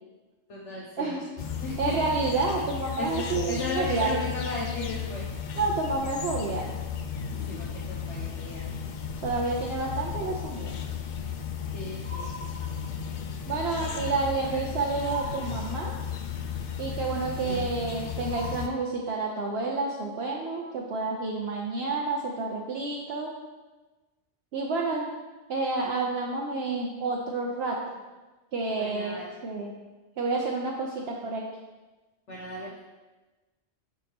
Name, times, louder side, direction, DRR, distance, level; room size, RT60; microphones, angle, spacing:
voice 1, 0.5-1.1 1.6-2.0 3.0-5.3 7.3-8.6 11.7-12.4 28.8-29.4 32.3-32.8, left 2 dB, 75° left, -5 dB, 1.3 m, -36 dB
sound 1, 1.4-18.7, left 7 dB, 55° left, 0.6 m, -34 dB
voice 2, 1.8-4.2 5.6-6.7 9.2-10.7 13.5-15.9 16.8-23.3 24.5-25.1 25.5-27.8 28.5-29.7 30.2-31.5, right 3 dB, 65° right, -1 dB, 0.9 m, -29 dB
sound 2, 12.0-13.3 15.1-16.3 18.3-19.5, equal, 10° left, 1.0 m, -43 dB
9.6 x 4.5 x 3.5 m, 1.2 s
omnidirectional pair, 1.2 m